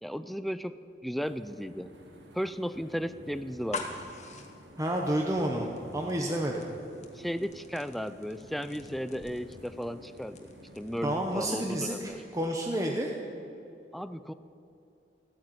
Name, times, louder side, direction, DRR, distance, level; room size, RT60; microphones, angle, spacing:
voice 1, 0.0-0.8 1.0-1.9 2.3-4.0 7.1-10.5 10.8-12.2 13.9-14.3, equal, ahead, 12 dB, 0.4 m, -35 dB
sound 1, 1.2-11.4, equal, 75° right, 2.3 m, -51 dB
sound 2, 3.5-13.2, left 4 dB, 40° left, 1.5 m, -47 dB
voice 2, 4.8-5.7 5.9-6.7 11.0-13.1, right 1 dB, 20° right, 0 dB, 1.0 m, -30 dB
15.0 x 9.3 x 9.2 m, 2.7 s
head